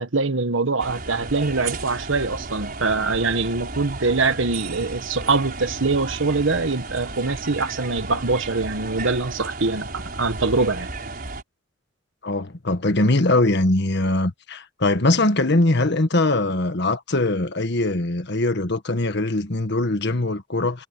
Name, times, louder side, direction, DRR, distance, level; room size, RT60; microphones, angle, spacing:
voice 1, 0.0-10.9, right 3 dB, 80° right, 1.4 m, -23 dB
sound 1, 0.8-11.4, right 3 dB, 50° right, 5.6 m, -34 dB
voice 2, 12.2-20.9, left 2 dB, 60° left, 1.6 m, -21 dB
head